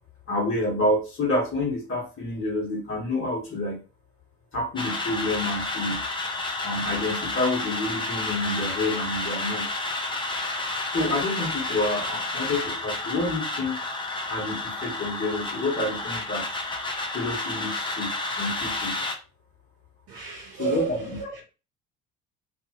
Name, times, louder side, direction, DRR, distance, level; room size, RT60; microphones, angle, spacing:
voice 1, 0.3-3.8 4.5-6.1 6.6-9.7 10.9-13.8 14.3-16.6 17.1-19.0 20.6-21.0, left 2 dB, 40° left, -4 dB, 1.4 m, -28 dB
sound 1, 4.8-19.1, left 2 dB, 15° left, 0.7 m, -30 dB
voice 2, 20.1-21.4, right 6 dB, 70° right, 0 dB, 0.8 m, -32 dB
2.7 x 2.7 x 2.7 m, 0.32 s
hypercardioid pair, 55°, 31 cm